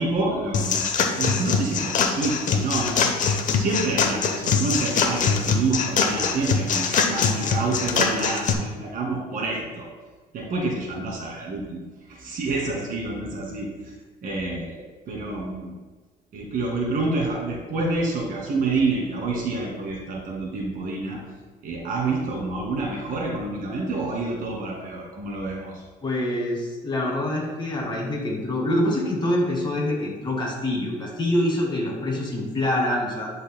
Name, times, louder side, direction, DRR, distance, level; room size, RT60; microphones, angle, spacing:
voice 1, 0.0-3.1 3.6-9.9 10.3-11.8 12.1-13.9 14.2-15.7 16.3-21.2 21.6-25.8, right 3 dB, 55° right, -2 dB, 2.1 m, -28 dB
sound 1, 0.5-8.5, left 5 dB, 50° left, 0.8 m, -23 dB
voice 2, 26.0-33.3, left 1 dB, 25° left, -2 dB, 2.0 m, -25 dB
10.0 x 5.2 x 2.2 m, 1.3 s
cardioid pair, 110°, 17 cm